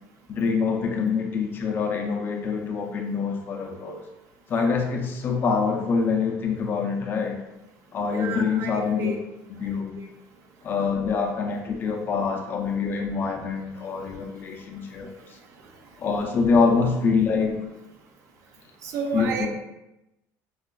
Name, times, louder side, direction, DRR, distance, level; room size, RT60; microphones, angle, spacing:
voice 1, 0.3-4.1 4.5-7.4 7.9-9.1 9.5-9.9 10.6-15.1 16.0-17.6 19.1-19.5, left 5 dB, 35° left, 3 dB, 0.4 m, -25 dB
voice 2, 8.1-9.2 10.0-10.1 16.5-16.6 18.8-19.5, right 4 dB, 50° right, 3 dB, 0.5 m, -31 dB
4.7 x 2.3 x 2.2 m, 0.95 s
cardioid pair, 155°, 6 cm